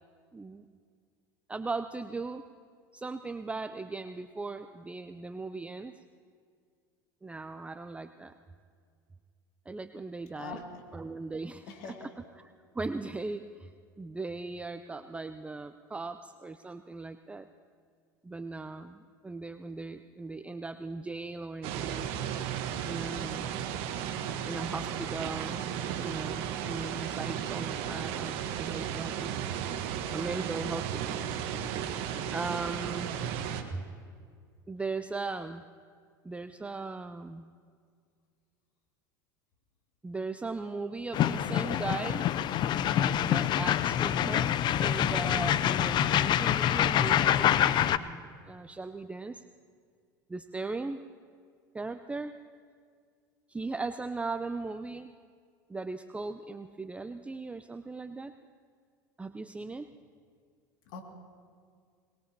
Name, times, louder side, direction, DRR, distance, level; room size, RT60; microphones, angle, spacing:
voice 1, 0.3-0.6 1.5-2.4 2.9-5.9 7.2-8.3 9.7-10.6 10.9-11.9 12.4-13.7 14.0-17.5 18.2-22.1 22.9-23.5 24.5-25.6 25.9-29.3 30.1-31.2 32.3-33.1 33.7-33.8 34.7-35.6 36.2-37.4 40.0-42.3 43.2-49.4 50.3-51.0 51.7-52.3 53.5-55.1 55.7-58.3 59.2-59.9, right 3 dB, 10° right, 10 dB, 0.5 m, -38 dB
voice 2, 10.4-10.8 11.7-12.1 60.9-61.0, left 4 dB, 65° left, 2 dB, 2.4 m, -42 dB
sound 1, 21.6-33.6, right 9 dB, 60° right, 1.3 m, -34 dB
sound 2, 41.1-48.0, left 10 dB, 45° left, 0.6 m, -26 dB
23.0 x 20.5 x 2.9 m, 2.1 s
hypercardioid pair, 85°, 11 cm